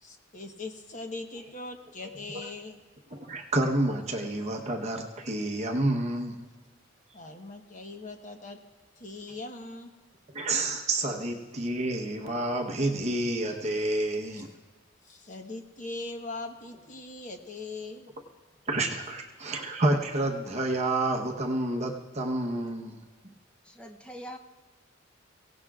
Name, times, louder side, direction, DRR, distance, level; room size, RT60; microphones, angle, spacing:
voice 1, 0.0-2.8 7.1-8.6 9.0-9.9 14.3-14.4 15.0-18.1 18.9-19.0, left 2 dB, 40° left, 4 dB, 1.1 m, -40 dB
voice 2, 3.1-6.4 10.3-14.5 18.7-23.0, right 2 dB, 35° right, 1 dB, 1.0 m, -29 dB
voice 3, 23.6-24.4, equal, 5° left, 3 dB, 0.7 m, -43 dB
23.5 x 17.0 x 2.4 m, 1.4 s
head